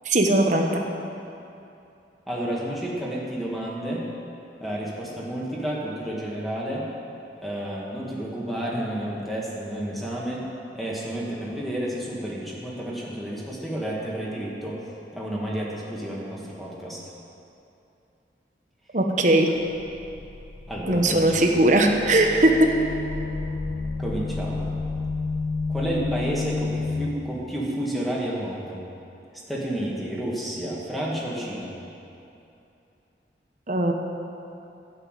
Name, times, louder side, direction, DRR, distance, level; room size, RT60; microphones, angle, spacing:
voice 1, 0.1-0.8 18.9-19.5 20.9-22.7 33.7-33.9, right 1 dB, 45° right, 2 dB, 1.1 m, -19 dB
voice 2, 2.3-4.1 4.6-6.9 7.4-10.4 10.7-14.8 15.1-17.0 20.7-21.4 24.0-24.7 25.7-28.8 29.5-31.7, right 1 dB, ahead, -5 dB, 1.9 m, -30 dB
sound 1, 19.6-27.1, left 3 dB, 70° left, 1.0 m, -31 dB
11.5 x 7.1 x 9.1 m, 2.8 s
head